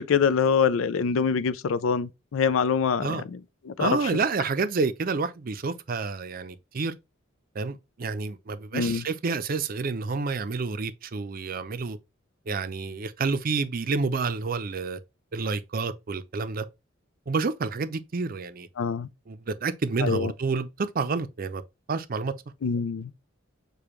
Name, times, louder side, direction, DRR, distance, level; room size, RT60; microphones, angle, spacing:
voice 1, 0.0-3.4 3.7-4.0 8.7-9.0 18.8-19.1 20.0-20.3 22.6-23.1, left 6 dB, 90° left, 0.4 m, -25 dB
voice 2, 3.8-6.9 7.6-12.0 12.5-15.0 15.3-16.7 17.3-18.7 19.3-21.6 21.9-22.3, right 4 dB, 45° right, 0.5 m, -29 dB
6.8 x 2.3 x 3.0 m
head